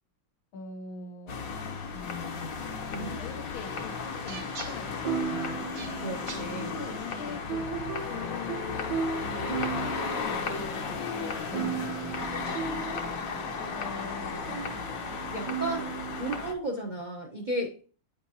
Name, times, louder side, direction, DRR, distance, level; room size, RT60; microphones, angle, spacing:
voice 1, 0.5-1.5 2.9-5.7 6.7-7.8 8.0-10.9 11.5-11.9 12.6-13.2 13.6-14.5, left 5 dB, 85° left, 1.7 m, -43 dB
sound 1, 1.3-16.5, left 5 dB, 50° left, 1.2 m, -35 dB
sound 2, 3.5-3.6 5.0-16.2, right 7 dB, 65° right, 1.7 m, -37 dB
sound 3, 4.1-15.9, right 5 dB, 85° right, 0.5 m, -51 dB
voice 2, 6.0-6.8 15.3-17.8, right 1 dB, 35° right, 0.8 m, -34 dB
9.1 x 5.2 x 2.8 m
omnidirectional pair, 2.1 m